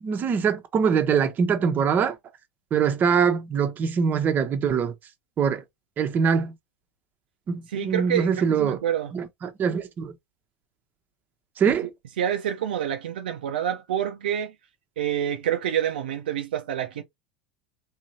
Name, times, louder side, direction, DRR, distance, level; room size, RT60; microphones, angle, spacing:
voice 1, 0.0-2.2 2.7-4.9 5.4-5.6 6.0-6.5 7.5-8.8 9.1-10.1 11.6-11.9, right 6 dB, 35° right, 1.0 m, -23 dB
voice 2, 7.7-9.1 11.6-11.7 12.2-14.5 15.0-17.0, right 10 dB, 75° right, 0.6 m, -27 dB
3.6 x 3.0 x 2.8 m
hypercardioid pair, 85°, 5 cm